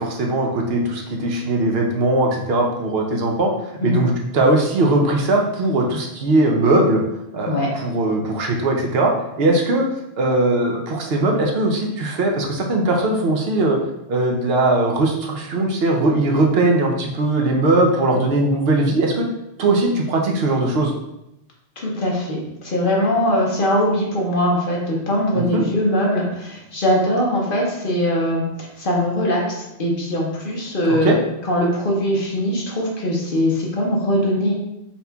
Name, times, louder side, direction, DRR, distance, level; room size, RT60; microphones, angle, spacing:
voice 1, 0.0-7.0 7.3-9.1 9.4-9.9 10.2-13.8 14.1-19.3 19.6-20.9 25.3-25.6 30.9-31.2, right 2 dB, 70° right, 1 dB, 0.9 m, -19 dB
voice 2, 21.8-31.1 31.4-34.5, equal, 55° left, -2 dB, 1.1 m, -21 dB
4.2 x 4.0 x 2.2 m, 0.87 s
omnidirectional pair, 1.1 m